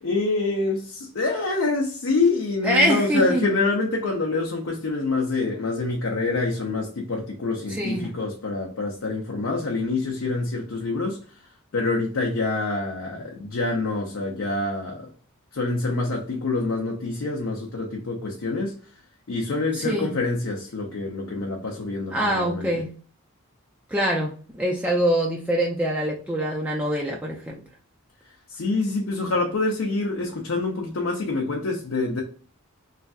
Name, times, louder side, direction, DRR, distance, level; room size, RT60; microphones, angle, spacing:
voice 1, 0.0-15.1 15.5-18.8 19.3-22.8 28.5-32.2, left 3 dB, 60° left, 0.6 m, -26 dB
voice 2, 2.6-3.4 7.7-8.1 19.7-20.1 22.1-22.9 23.9-27.5, right 1 dB, 5° right, 0.3 m, -24 dB
3.2 x 2.6 x 2.3 m
head